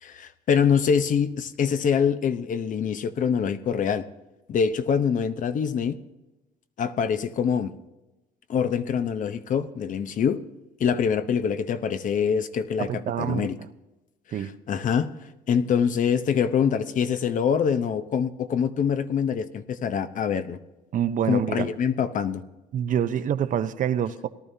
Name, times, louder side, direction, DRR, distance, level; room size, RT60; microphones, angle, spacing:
voice 1, 0.0-4.0 4.5-6.0 6.8-7.7 8.5-10.4 10.8-12.9 13.2-13.5 14.3-15.2 15.5-20.6 21.3-22.4, left 7 dB, 50° left, 11 dB, 0.8 m, -24 dB
voice 2, 12.8-13.5 14.3-14.5 20.9-21.7 22.7-24.3, right 9 dB, 50° right, 11 dB, 0.7 m, -26 dB
18.5 x 12.0 x 2.8 m, 1.0 s
cardioid pair, 110°, 17 cm